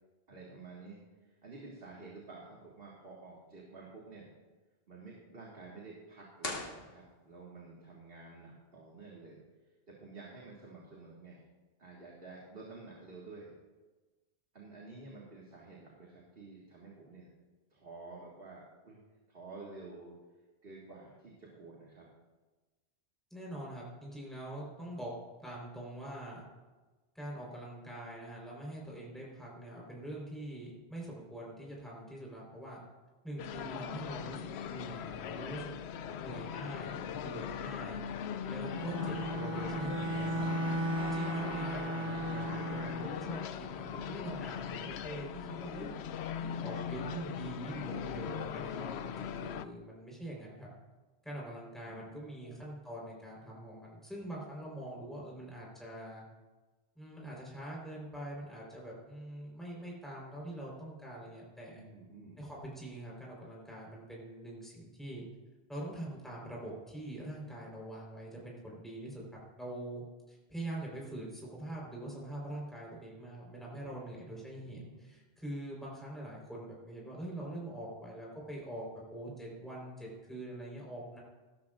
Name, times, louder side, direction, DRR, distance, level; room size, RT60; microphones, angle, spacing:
voice 1, 0.3-4.3 4.9-9.4 9.9-11.4 11.8-13.5 14.5-17.3 17.7-19.0 19.3-20.1 20.6-22.1 35.9-36.5 43.6-44.2 51.9-52.2 52.4-52.6 61.7-62.4 73.5-74.2 74.5-75.1, right 3 dB, 65° right, -4 dB, 2.2 m, -51 dB
sound 1, 6.4-7.6, left 2 dB, 65° left, 2.1 m, -41 dB
voice 2, 23.3-25.1 25.4-26.5 27.1-32.8 33.2-35.8 36.1-38.0 38.4-40.4 41.0-50.7 51.2-56.2 57.0-61.8 62.4-65.2 65.7-69.2 69.6-81.2, right 1 dB, ahead, -4 dB, 4.3 m, -44 dB
sound 2, 33.4-49.7, left 8 dB, 80° left, 0.9 m, -40 dB
Bowed string instrument, 38.7-43.2, right 1 dB, 35° right, 0.6 m, -36 dB
17.5 x 13.0 x 2.6 m, 1.2 s
omnidirectional pair, 1.1 m